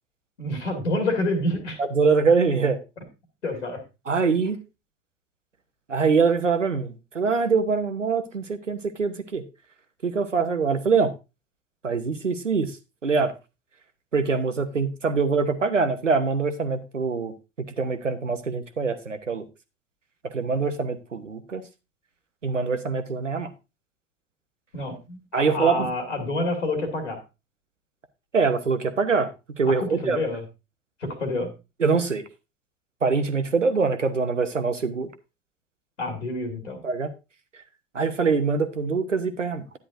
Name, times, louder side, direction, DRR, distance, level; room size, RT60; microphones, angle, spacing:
voice 1, 0.4-1.8 3.4-3.8 24.7-27.2 29.8-30.4 31.0-31.5 36.0-36.8, left 2 dB, 80° left, 4 dB, 2.2 m, -28 dB
voice 2, 1.8-2.8 4.1-4.6 5.9-9.4 10.0-11.1 11.8-12.8 13.0-13.3 14.1-17.3 17.8-19.4 20.3-21.6 22.4-23.5 25.3-25.9 28.3-29.3 29.6-30.2 31.8-32.2 33.0-35.1 36.8-37.1 37.9-39.6, right 5 dB, 90° right, 10 dB, 0.8 m, -24 dB
10.5 x 9.7 x 2.6 m, 0.27 s
figure-of-eight pair, 75°, 36 cm